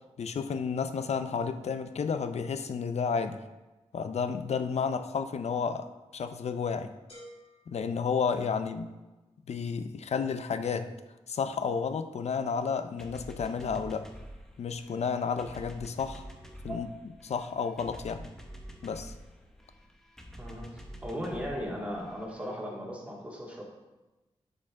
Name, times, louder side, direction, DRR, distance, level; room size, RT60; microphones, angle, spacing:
voice 1, 0.2-3.4 3.9-5.9 6.1-6.9 7.7-8.9 9.5-10.9 11.3-14.1 14.6-16.3 16.6-16.9 17.2-18.3 18.8-19.1, left 6 dB, 80° left, 10 dB, 0.5 m, -31 dB
sound 1, 7.1-9.0, equal, 60° left, 2.9 m, -54 dB
sound 2, 13.0-22.6, equal, 5° left, 1.0 m, -48 dB
voice 2, 20.4-23.6, equal, 10° right, -3 dB, 2.1 m, -37 dB
9.6 x 6.5 x 3.7 m, 1.1 s
wide cardioid pair, 90°, 11 cm